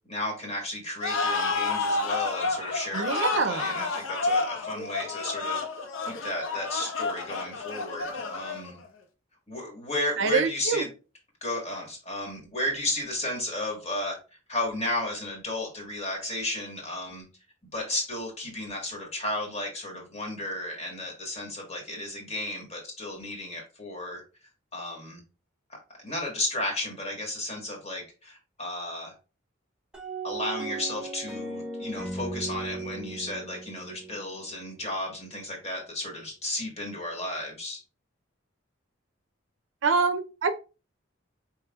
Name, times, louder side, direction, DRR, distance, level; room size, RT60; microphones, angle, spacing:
voice 1, 0.1-5.6 6.1-8.8 9.5-10.9 11.4-14.1 14.5-17.2 17.7-24.2 24.7-25.2 25.7-29.1 30.2-37.8, left 1 dB, 35° left, 1.4 m, -33 dB
sound 1, 1.0-8.9, left 3 dB, 90° left, 0.7 m, -30 dB
voice 2, 2.9-3.8 10.2-10.8 39.8-40.6, right 4 dB, 70° right, 0.5 m, -26 dB
sound 2, 29.9-35.1, right 3 dB, 5° right, 0.9 m, -37 dB
4.8 x 3.2 x 2.3 m
head